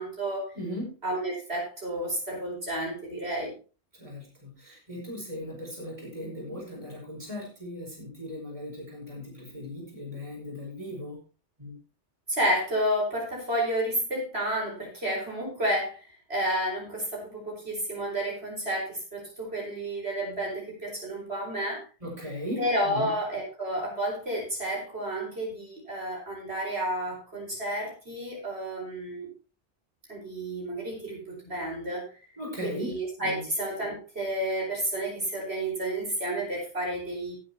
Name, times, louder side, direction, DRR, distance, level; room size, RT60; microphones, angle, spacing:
voice 1, 0.0-0.5 1.0-3.5 12.3-16.0 16.3-21.8 22.6-29.3 30.1-32.0 32.6-37.4, right 1 dB, 65° right, -2 dB, 5.3 m, -31 dB
voice 2, 0.5-0.9 4.0-11.2 11.6-11.7 22.0-23.1 32.4-33.4, left 1 dB, 30° right, -3 dB, 5.1 m, -38 dB
18.5 x 8.7 x 3.0 m, 0.34 s
omnidirectional pair, 1.2 m